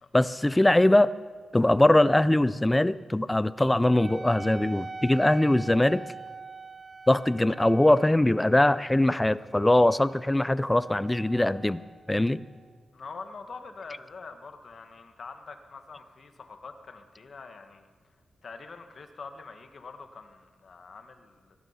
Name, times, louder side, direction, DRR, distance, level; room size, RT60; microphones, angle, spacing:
voice 1, 0.1-1.2 1.5-6.1 7.1-11.8 12.1-12.4, left 1 dB, 10° left, 16 dB, 0.4 m, -22 dB
Wind instrument woodwind instrument, 3.8-12.8, right 3 dB, 30° right, 1.0 m, -44 dB
voice 2, 12.9-17.9 18.4-21.5, left 4 dB, 45° left, 6 dB, 1.3 m, -44 dB
21.0 x 12.5 x 5.6 m, 1.5 s
wide cardioid pair, 155°, 0 cm